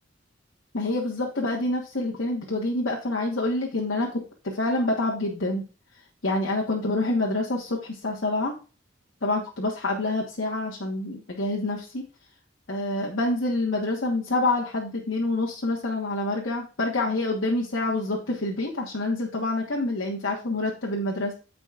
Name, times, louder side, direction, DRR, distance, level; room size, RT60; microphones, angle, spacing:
voice 1, 0.7-5.6 6.2-8.5 9.2-12.0 12.7-21.3, left 2 dB, 85° left, -3 dB, 1.4 m, -27 dB
14.5 x 5.1 x 2.5 m, 0.35 s
head